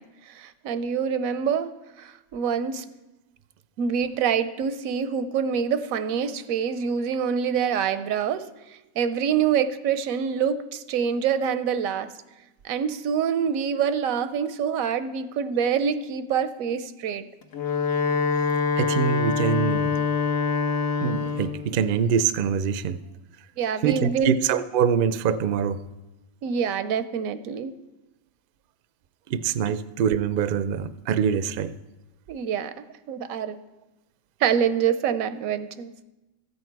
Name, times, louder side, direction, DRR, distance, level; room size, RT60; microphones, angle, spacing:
voice 1, 0.0-2.8 3.8-12.1 12.6-17.3 23.6-24.3 26.4-27.7 32.3-33.6 34.4-35.9, right 7 dB, 90° right, 12 dB, 1.0 m, -26 dB
Wind instrument woodwind instrument, 17.4-21.6, left 5 dB, 80° left, 1.4 m, -25 dB
voice 2, 18.8-19.9 21.0-23.0 23.8-25.8 29.3-31.7, right 8 dB, 65° right, 13 dB, 0.5 m, -24 dB
13.5 x 8.1 x 4.6 m, 1.0 s
omnidirectional pair, 1.4 m